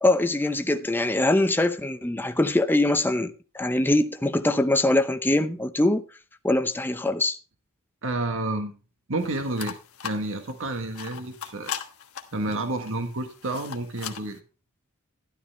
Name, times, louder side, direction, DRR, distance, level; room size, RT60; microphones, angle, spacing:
voice 1, 0.0-6.0 6.4-7.4, left 2 dB, 10° left, 0.7 m, -23 dB
voice 2, 8.0-8.8 9.1-9.8 10.0-11.7 12.3-14.4, right 2 dB, 65° right, 1.5 m, -30 dB
sound 1, 9.2-14.4, left 8 dB, 75° left, 1.3 m, -40 dB
12.5 x 11.5 x 3.3 m
head